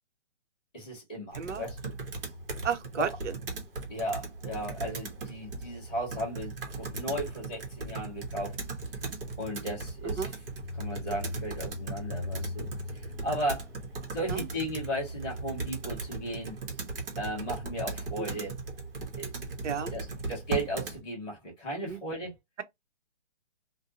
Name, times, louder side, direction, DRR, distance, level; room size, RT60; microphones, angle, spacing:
voice 1, 0.7-1.9 2.9-3.2 3.9-8.6 9.4-10.4 10.7-13.7 14.1-16.6 17.2-18.6 19.1-19.3 19.7-22.3, right 1 dB, 5° left, 0.5 m, -36 dB
Computer keyboard, 1.3-21.0, right 2 dB, 50° right, 0.9 m, -37 dB
voice 2, 2.6-3.3 10.2-10.3 14.3-14.4 19.6-19.9 21.8-22.0, right 7 dB, 75° right, 0.8 m, -32 dB
2.7 x 2.2 x 2.6 m
hypercardioid pair, 165°, 36 cm